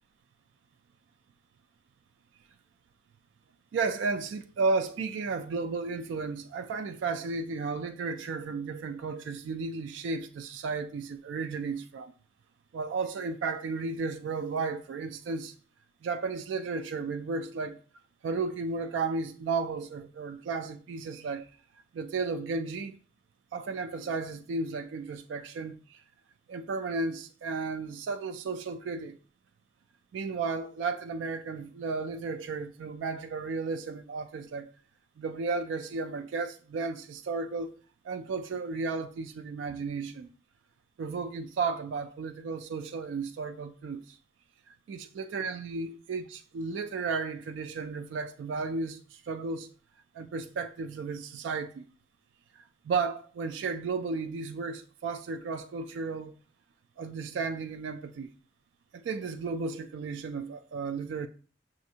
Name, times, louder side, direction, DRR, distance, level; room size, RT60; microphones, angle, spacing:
voice 1, 3.7-12.1 12.7-15.5 16.0-17.8 18.2-21.5 21.9-23.0 23.5-26.0 26.5-29.2 30.1-34.7 35.2-37.8 38.0-40.3 41.0-44.2 44.7-49.7 50.1-51.9 52.5-56.3 57.0-58.3 58.9-61.3, right 4 dB, 75° right, 0.3 m, -34 dB
6.2 x 2.5 x 2.7 m
head